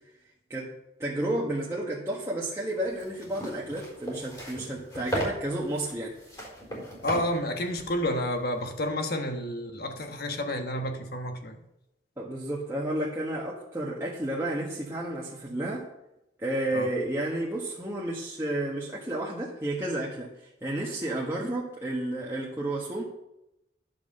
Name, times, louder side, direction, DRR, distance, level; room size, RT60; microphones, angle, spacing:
voice 1, 1.0-6.1 12.2-15.8 16.4-20.3 20.6-23.0, right 1 dB, 15° right, -5 dB, 1.5 m, -31 dB
sound 1, 2.8-8.8, right 1 dB, 25° left, 4.2 m, -37 dB
voice 2, 7.0-11.6 16.7-16.9, left 1 dB, 60° left, 5 dB, 1.3 m, -30 dB
11.0 x 7.3 x 5.5 m, 0.88 s
head